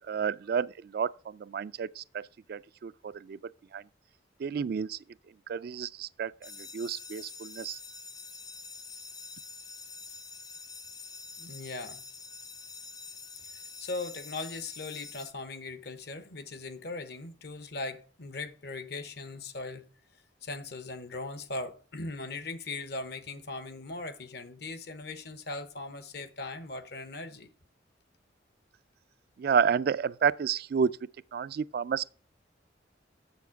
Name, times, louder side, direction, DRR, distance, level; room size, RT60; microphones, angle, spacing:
voice 1, 0.0-2.2 2.5-3.4 3.7-3.8 4.4-5.0 5.5-7.8 29.4-31.0 31.3-32.1, right 6 dB, 55° right, 0.3 m, -30 dB
sound 1, 6.4-15.3, left 4 dB, 20° left, 0.5 m, -46 dB
voice 2, 11.4-12.0 13.8-19.9 20.4-27.5, left 3 dB, 60° left, 0.9 m, -39 dB
7.1 x 6.9 x 5.8 m
head